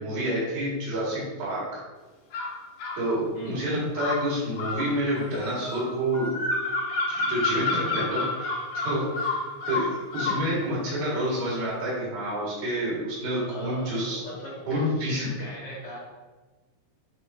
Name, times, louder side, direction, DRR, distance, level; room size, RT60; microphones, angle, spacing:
voice 1, 0.0-1.8 3.0-6.3 7.1-9.4 9.7-14.2 14.7-15.3, right 1 dB, 80° right, -6 dB, 3.8 m, -28 dB
sound 1, 2.3-3.0 3.9-10.5, left 3 dB, 85° left, 1.2 m, -29 dB
voice 2, 13.4-14.9 15.4-16.0, left 1 dB, 70° left, -4 dB, 1.8 m, -39 dB
9.3 x 3.8 x 2.7 m, 1.3 s
omnidirectional pair, 4.1 m